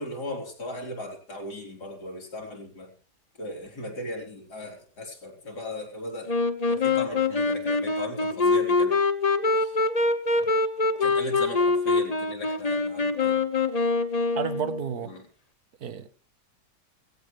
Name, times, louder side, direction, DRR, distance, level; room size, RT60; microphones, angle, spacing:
voice 1, 0.0-2.9 3.4-6.4 6.7-9.0 9.5-9.8 11.0-13.5 15.0-15.3, left 1 dB, 80° left, 1 dB, 4.4 m, -37 dB
Wind instrument woodwind instrument, 6.3-15.0, left 3 dB, 30° left, 1.0 m, -24 dB
voice 2, 14.4-15.1 15.8-16.1, right 8 dB, 65° right, 12 dB, 1.6 m, -31 dB
17.0 x 16.5 x 3.2 m, 0.36 s
omnidirectional pair, 1.7 m